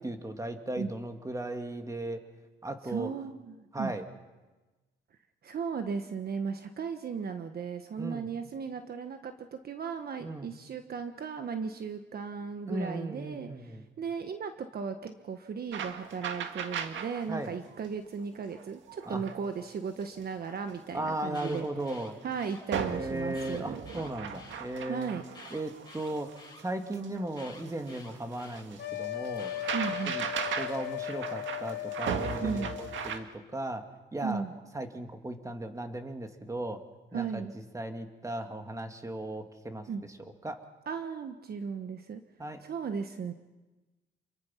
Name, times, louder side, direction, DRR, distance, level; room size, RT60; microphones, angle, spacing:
voice 1, 0.0-2.2 2.6-3.1 3.7-4.0 8.0-8.3 10.2-10.5 12.7-13.8 17.3-17.5 19.0-19.2 20.9-22.2 22.8-25.1 25.5-26.3 26.6-29.5 30.1-30.2 30.6-33.8 34.1-34.4 34.7-36.8 37.1-37.5 37.7-39.9 40.4-40.6 42.4-42.6, right 1 dB, 15° right, 5 dB, 2.5 m, -36 dB
voice 2, 2.9-3.9 5.4-21.6 22.2-23.8 24.9-25.2 29.7-30.2 32.4-32.7 34.2-34.5 37.1-37.5 39.9-40.0 40.9-42.2 42.6-43.3, right 6 dB, 50° right, 7 dB, 1.3 m, -36 dB
sound 1, 15.7-17.3 17.6-17.9 18.5-19.6 20.2-20.3 20.7-20.8 21.2-22.4 22.7-33.2, right 7 dB, 70° right, 1.9 m, -38 dB
Alarm, 21.1-22.6 23.3-24.6 25.3-26.6 27.3-28.6 29.3-30.6, left 3 dB, 20° left, 6.4 m, -51 dB
sound 2, 28.8-33.2, left 13 dB, 60° left, 1.3 m, -37 dB
28.5 x 22.0 x 5.9 m, 1.2 s
cardioid pair, 90°, 20 cm